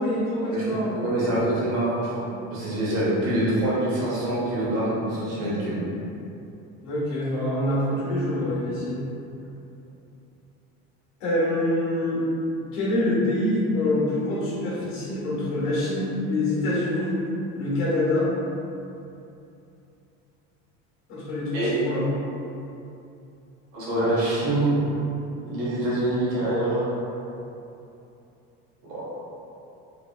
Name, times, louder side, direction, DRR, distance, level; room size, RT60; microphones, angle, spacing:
voice 1, 0.0-1.4 6.8-9.0 11.2-12.2 12.7-17.2 17.5-18.3 21.1-22.0, left 1 dB, 85° left, -7 dB, 1.2 m, -25 dB
voice 2, 0.5-5.8 21.5-21.7 23.7-24.8 25.4-26.9 28.9-29.0, right 1 dB, 85° right, -8 dB, 1.5 m, -25 dB
3.4 x 3.1 x 2.3 m, 2.8 s
supercardioid pair, 105°, 34 cm